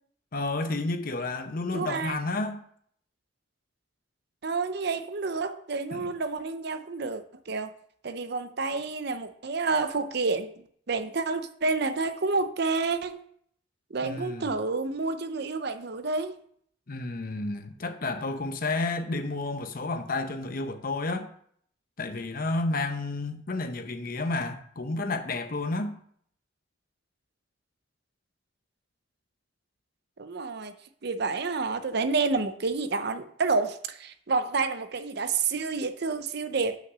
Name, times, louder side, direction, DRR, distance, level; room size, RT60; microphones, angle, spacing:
voice 1, 0.3-2.6 5.9-6.1 14.0-14.5 16.9-21.3 22.0-26.0, left 2 dB, 50° left, 0.8 m, -31 dB
voice 2, 1.7-2.2 4.4-7.7 8.0-10.5 10.9-13.2 13.9-16.4 30.2-30.7 31.0-36.8, right 4 dB, 60° right, 0.7 m, -29 dB
6.0 x 5.8 x 6.1 m
head